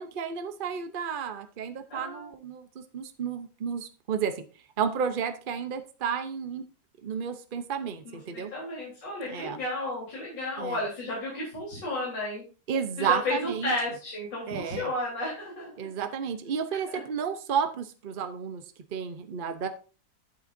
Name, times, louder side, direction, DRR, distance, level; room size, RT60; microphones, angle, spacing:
voice 1, 0.0-4.4 4.8-6.6 7.0-8.5 9.2-9.6 10.6-10.8 12.7-13.7 14.5-14.9 15.8-18.6 18.9-19.7, right 7 dB, 60° right, 9 dB, 0.5 m, -32 dB
voice 2, 1.9-2.2 8.0-12.4 13.0-15.7, left 2 dB, 65° left, -6 dB, 4.5 m, -33 dB
12.0 x 7.9 x 2.6 m, 0.35 s
omnidirectional pair, 2.1 m